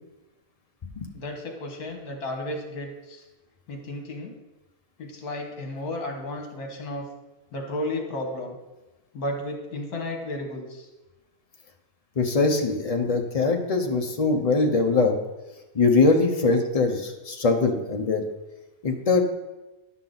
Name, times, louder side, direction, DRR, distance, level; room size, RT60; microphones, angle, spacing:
voice 1, 1.1-3.2 3.7-4.3 5.0-7.1 7.5-8.6 9.1-10.9, left 1 dB, 65° left, 2 dB, 1.8 m, -33 dB
voice 2, 12.2-15.2 15.7-18.3 18.8-19.2, left 3 dB, 40° left, 4 dB, 0.5 m, -22 dB
10.5 x 5.9 x 3.9 m, 1.1 s
omnidirectional pair, 1.7 m